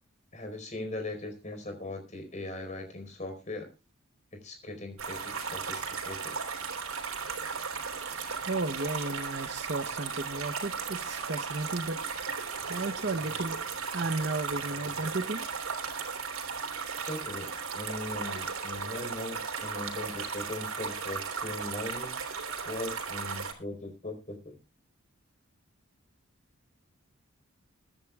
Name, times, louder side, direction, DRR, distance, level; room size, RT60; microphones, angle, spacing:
voice 1, 0.3-3.7 4.3-6.4 17.1-17.5 17.7-22.2 22.6-24.5, left 2 dB, 35° left, 4.5 m, -39 dB
sound 1, 5.0-23.5, right 5 dB, 85° right, 3.2 m, -36 dB
voice 2, 8.0-12.0 12.3-13.6 13.9-15.5, right 3 dB, 55° right, 0.9 m, -34 dB
22.5 x 11.0 x 2.3 m
head